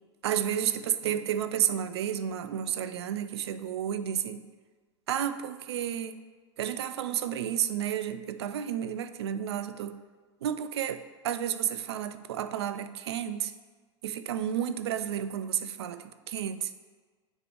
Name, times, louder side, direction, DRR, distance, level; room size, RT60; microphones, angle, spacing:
voice 1, 0.2-4.5 5.1-6.2 6.6-10.0 10.4-13.5 14.0-16.9, right 10 dB, 65° right, 12 dB, 0.4 m, -31 dB
8.3 x 3.1 x 4.8 m, 1.4 s
figure-of-eight pair, 80°, 15 cm